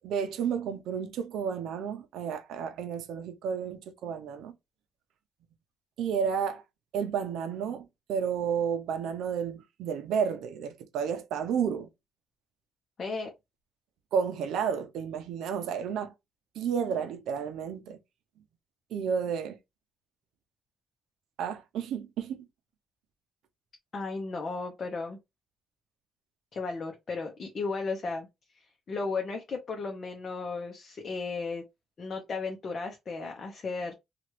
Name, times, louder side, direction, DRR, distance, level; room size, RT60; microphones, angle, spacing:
voice 1, 0.0-4.5 6.0-6.6 6.9-11.9 14.1-16.1 16.5-18.0 18.9-19.6 21.4-22.5, right 7 dB, 80° right, 0.5 m, -31 dB
voice 2, 13.0-13.3 23.9-25.2 26.5-28.3 28.6-31.6 32.0-33.9, left 4 dB, 45° left, 0.8 m, -35 dB
2.9 x 2.4 x 3.0 m
cardioid pair, 90°, 0 cm